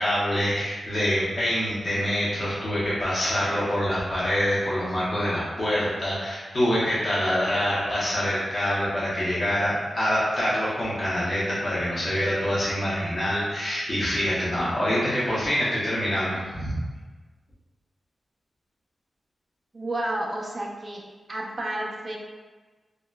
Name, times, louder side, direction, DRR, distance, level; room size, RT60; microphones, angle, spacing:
voice 1, 0.0-16.8, equal, 40° left, -9 dB, 0.8 m, -25 dB
voice 2, 19.7-21.0 21.3-22.2, right 1 dB, 30° right, -1 dB, 0.4 m, -31 dB
3.7 x 2.1 x 2.2 m, 1.3 s
wide cardioid pair, 180°, 0 cm